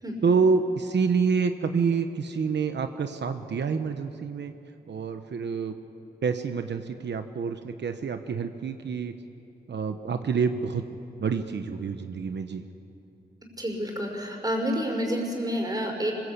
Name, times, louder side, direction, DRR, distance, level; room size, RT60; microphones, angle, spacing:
voice 1, 0.2-4.5 4.9-5.7 6.2-9.1 9.7-10.8 11.2-12.6, right 5 dB, 90° right, 8 dB, 0.9 m, -27 dB
voice 2, 13.6-16.1, equal, 20° right, 1 dB, 5.1 m, -29 dB
25.0 x 21.5 x 8.4 m, 2.8 s
wide cardioid pair, 100°, 18 cm